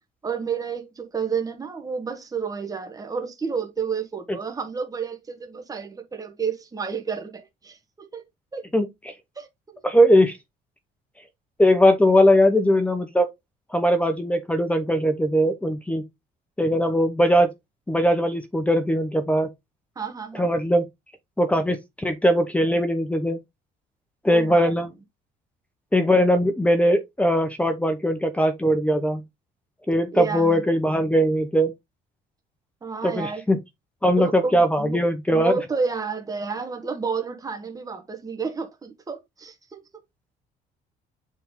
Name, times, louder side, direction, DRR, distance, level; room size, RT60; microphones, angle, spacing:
voice 1, 0.2-8.2 8.5-8.7 9.3-9.5 9.7-9.8 19.9-20.5 24.3-24.7 30.1-30.6 32.8-33.4 34.2-35.0 35.3-39.8, right 5 dB, 20° right, 1.5 m, -30 dB
voice 2, 8.7-9.1 9.8-10.4 11.6-13.3 13.7-16.0 16.6-17.5 17.9-19.5 20.4-20.9 21.4-23.4 24.2-24.9 25.9-29.2 29.9-31.7 33.0-33.6 34.0-35.5, equal, 10° left, 0.9 m, -20 dB
7.3 x 3.5 x 3.7 m
cardioid pair, 110°, 17 cm